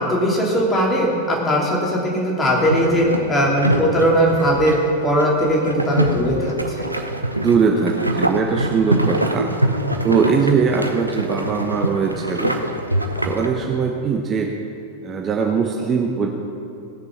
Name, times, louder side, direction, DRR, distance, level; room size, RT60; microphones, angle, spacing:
voice 1, 0.0-4.8 5.0-6.9, equal, 15° left, -2 dB, 2.9 m, -19 dB
sound 1, 2.5-13.5, right 1 dB, 85° right, 0.8 m, -24 dB
voice 2, 7.4-9.5 10.0-12.5 13.2-14.5 15.0-16.3, right 5 dB, 25° right, 1 dB, 1.0 m, -20 dB
18.0 x 6.8 x 5.9 m, 2.6 s
figure-of-eight pair, 90°, 0 cm